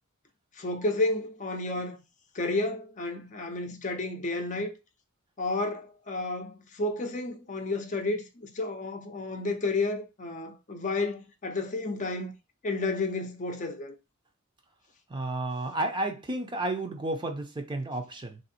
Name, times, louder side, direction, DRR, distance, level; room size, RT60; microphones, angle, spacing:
voice 1, 0.6-2.0 2.3-4.7 5.4-12.3 12.6-14.0, left 2 dB, 35° left, 0.6 m, -31 dB
voice 2, 15.1-18.4, right 2 dB, 20° right, 0.6 m, -32 dB
3.5 x 2.6 x 4.1 m
head